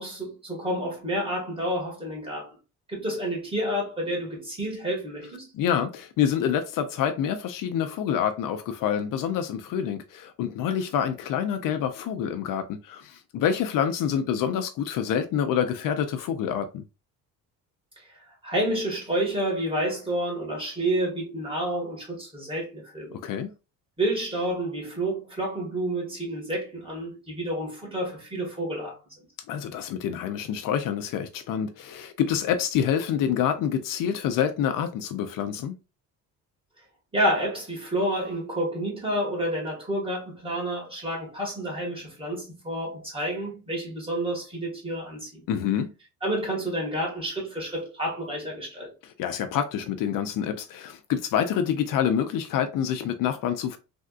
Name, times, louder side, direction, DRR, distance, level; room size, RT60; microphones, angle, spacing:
voice 1, 0.0-2.6 2.9-5.5 18.1-23.2 24.0-29.2 37.1-45.4 46.2-48.9, right 1 dB, 15° right, 1.7 m, -29 dB
voice 2, 5.5-16.8 23.1-23.5 29.5-35.7 45.5-45.9 49.2-53.8, left 8 dB, 65° left, 0.5 m, -27 dB
3.4 x 2.6 x 2.4 m
cardioid pair, 105°, 35 cm